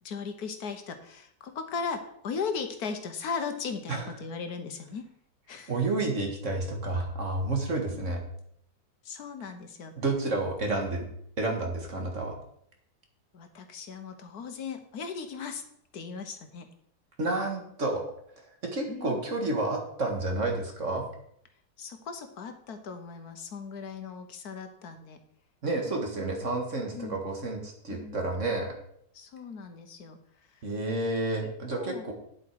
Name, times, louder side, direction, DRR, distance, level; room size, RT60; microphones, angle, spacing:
voice 1, 0.0-5.0 5.5-5.7 9.0-10.0 13.3-15.6 15.9-16.7 18.9-19.2 21.8-25.2 26.9-27.2 27.9-28.2 29.1-30.2 30.5-30.6 31.4-32.0, left 5 dB, 60° left, 7 dB, 1.5 m, -37 dB
voice 2, 5.7-8.2 10.0-11.1 11.4-12.4 17.2-18.0 18.4-21.1 25.6-28.7 30.6-32.1, right 2 dB, 45° right, 2 dB, 1.9 m, -30 dB
9.8 x 7.7 x 4.7 m, 0.70 s
omnidirectional pair, 1.9 m